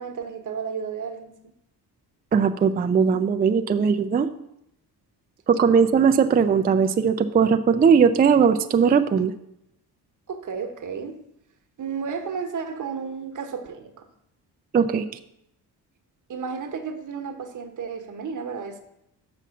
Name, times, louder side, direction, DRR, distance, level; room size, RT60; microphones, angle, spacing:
voice 1, 0.0-1.3 5.7-5.8 10.3-11.1 11.8-14.1 16.3-18.8, right 6 dB, 50° right, 6 dB, 1.1 m, -32 dB
voice 2, 2.3-4.3 5.5-9.3 14.7-15.1, right 6 dB, 25° right, 7 dB, 0.3 m, -19 dB
6.1 x 5.7 x 6.9 m, 0.80 s
cardioid pair, 120°, 40 cm